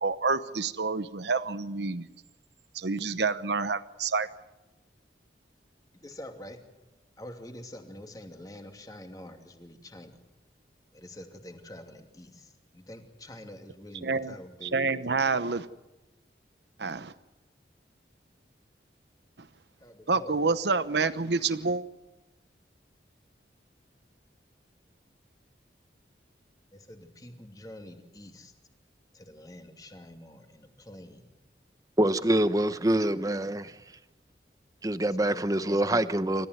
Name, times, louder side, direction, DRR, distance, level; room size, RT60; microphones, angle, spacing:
voice 1, 0.0-2.1 2.7-4.3 14.0-14.3 14.6-15.7 16.8-17.1 20.1-21.8, right 4 dB, 75° right, 1.0 m, -28 dB
voice 2, 6.0-6.6 7.2-10.2 10.9-15.2 19.8-20.5 26.7-28.5 29.1-31.3 32.3-32.7 33.6-33.7 35.0-35.8, left 1 dB, 20° left, 2.7 m, -46 dB
voice 3, 32.0-33.7 34.8-36.5, right 1 dB, 20° right, 0.9 m, -25 dB
28.0 x 14.5 x 9.5 m
head